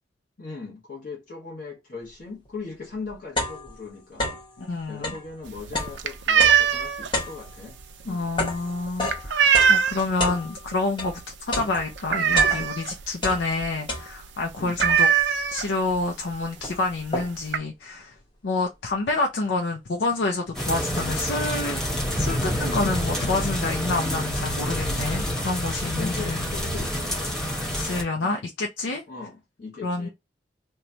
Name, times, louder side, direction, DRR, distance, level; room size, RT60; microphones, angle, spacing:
voice 1, 0.4-4.4 4.9-7.8 8.0-8.3 14.6-14.8 22.8-23.0 26.0-27.4 29.1-30.1, left 4 dB, 50° left, 1.1 m, -39 dB
sound 1, 2.5-2.6 2.9-4.6 4.9-11.2 11.5-12.9 13.2-14.4 14.8-15.3 15.9-16.0 16.3-17.6, left 1 dB, 30° left, 1.0 m, -31 dB
voice 2, 4.6-5.1 8.1-11.2 11.5-15.1 15.5-18.1 18.4-26.4 27.7-29.0 29.8-30.1, left 3 dB, 85° left, 0.5 m, -28 dB
sound 2, 5.5-10.2 10.6-10.9 11.2-11.3 11.6-13.0 13.4-13.5 13.7-14.0 14.2-14.3 14.8-16.0 16.8-16.9 17.1-17.6, right 7 dB, 85° right, 0.4 m, -21 dB
sound 3, 20.5-28.0, equal, 5° left, 0.9 m, -28 dB
3.0 x 2.2 x 3.9 m
head